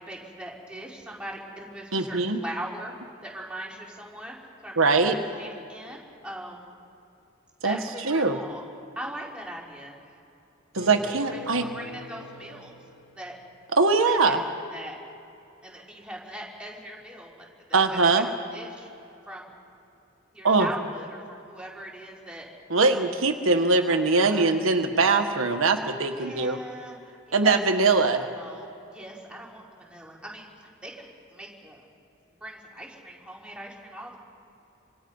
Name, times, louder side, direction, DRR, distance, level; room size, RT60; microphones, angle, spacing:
voice 1, 0.0-2.9 3.2-4.4 4.6-6.7 7.6-8.6 9.0-9.9 11.2-12.8 13.1-13.4 14.0-14.4 14.7-15.0 15.6-18.2 18.5-18.9 19.3-19.5 20.3-22.5 22.8-23.0 23.9-24.6 25.7-31.8 32.4-34.2, right 1 dB, 5° right, -3 dB, 4.0 m, -40 dB
voice 2, 1.9-2.4 4.8-5.2 7.6-7.8 8.1-8.4 10.7-11.6 13.8-14.4 17.7-18.2 20.4-20.7 22.7-26.6 27.3-28.2, right 3 dB, 80° right, 6 dB, 1.5 m, -22 dB
sound 1, 10.8-13.8, left 3 dB, 60° left, 4.7 m, -43 dB
26.0 x 25.5 x 5.5 m, 2.8 s
head